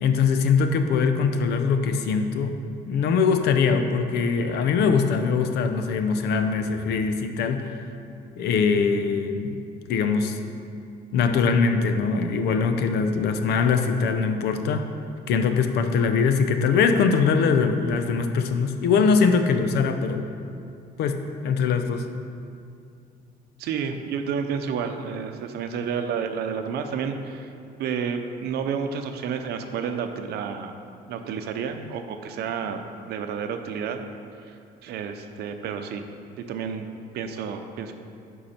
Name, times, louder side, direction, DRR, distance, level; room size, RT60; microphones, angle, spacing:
voice 1, 0.0-2.6 2.8-7.7 8.4-9.6 9.9-10.4 11.1-14.9 15.3-20.3 21.0-22.0, left 5 dB, 75° left, 7 dB, 0.7 m, -22 dB
voice 2, 23.6-27.5 27.8-30.7 31.1-34.0 34.4-36.0 36.4-37.9, right 6 dB, 75° right, 7 dB, 0.7 m, -30 dB
11.5 x 4.7 x 4.3 m, 2.4 s
cardioid pair, 110°, 17 cm